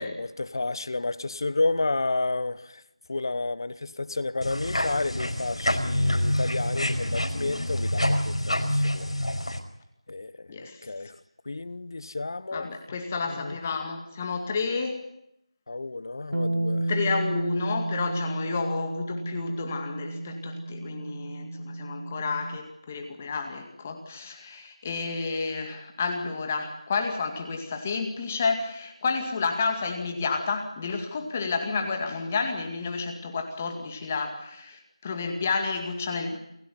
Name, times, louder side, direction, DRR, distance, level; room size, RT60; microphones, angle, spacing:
voice 1, 0.0-2.8 3.1-9.1 10.1-11.2 11.5-12.7 13.3-13.6 15.7-16.9, left 2 dB, 45° left, 1.0 m, -31 dB
sound 1, 4.4-9.6, left 1 dB, 80° left, 5.1 m, -27 dB
voice 2, 12.5-15.0 16.9-36.4, left 4 dB, 20° left, 2.1 m, -30 dB
Bass guitar, 16.3-22.6, right 2 dB, 75° right, 1.2 m, -32 dB
28.5 x 15.5 x 9.4 m
figure-of-eight pair, 170°, 3 cm